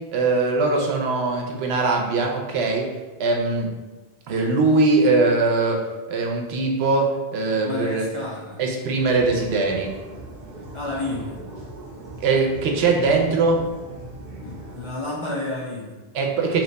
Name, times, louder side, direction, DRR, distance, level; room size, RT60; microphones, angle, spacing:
voice 1, 0.1-2.9 3.2-3.7 4.3-8.0 8.6-9.9 12.2-13.6 16.1-16.6, right 3 dB, 85° right, 1 dB, 0.8 m, -21 dB
voice 2, 7.6-8.6 10.7-11.4 14.4-16.0, left 2 dB, 50° left, -5 dB, 0.4 m, -30 dB
sound 1, 9.0-14.9, right 1 dB, 50° right, 0.8 m, -39 dB
2.9 x 2.2 x 3.9 m, 1.2 s
omnidirectional pair, 1.0 m